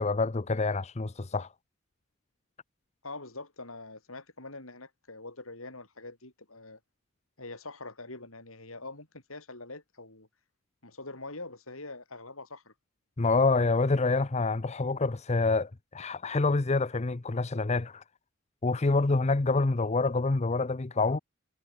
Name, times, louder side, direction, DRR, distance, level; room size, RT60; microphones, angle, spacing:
voice 1, 0.0-1.5 13.2-18.0 18.6-21.2, left 3 dB, 30° left, 0.7 m, -27 dB
voice 2, 3.0-6.8 7.4-10.3 10.8-12.7, left 2 dB, 75° left, 7.6 m, -44 dB
head